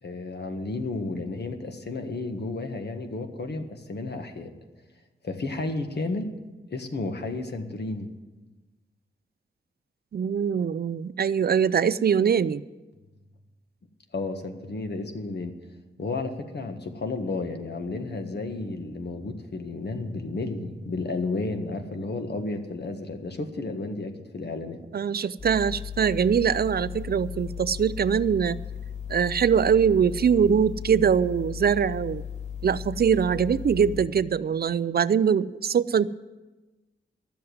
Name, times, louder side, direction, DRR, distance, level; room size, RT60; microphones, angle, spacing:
voice 1, 0.0-4.5 5.2-6.3 6.7-8.1 14.1-15.5 16.0-24.8, left 3 dB, 60° left, 6 dB, 1.6 m, -32 dB
voice 2, 10.1-12.6 24.9-28.6 29.1-32.2 32.6-36.1, right 7 dB, 55° right, 17 dB, 0.4 m, -23 dB
sound 1, 25.4-34.1, left 8 dB, 40° left, 2.9 m, -36 dB
12.0 x 7.7 x 9.4 m, 1.1 s
wide cardioid pair, 85°, 19 cm